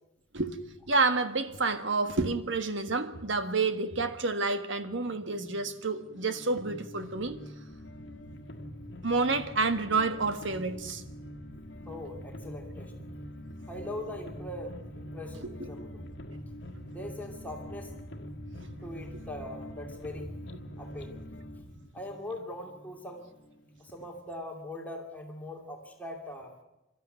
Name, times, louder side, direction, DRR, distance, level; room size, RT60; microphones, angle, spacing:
voice 1, 0.9-7.4 9.0-11.0 15.4-15.7, right 3 dB, 65° right, 9 dB, 1.5 m, -29 dB
sound 1, 5.0-24.1, equal, 65° left, 1.5 m, -46 dB
sound 2, 7.7-21.9, equal, 85° right, 4.2 m, -48 dB
voice 2, 11.9-12.9 13.7-16.1 16.9-17.9 18.8-20.3 20.8-21.2 21.9-23.2 23.8-26.6, left 1 dB, 10° left, 1 dB, 2.6 m, -41 dB
26.5 x 13.0 x 9.3 m, 0.97 s
head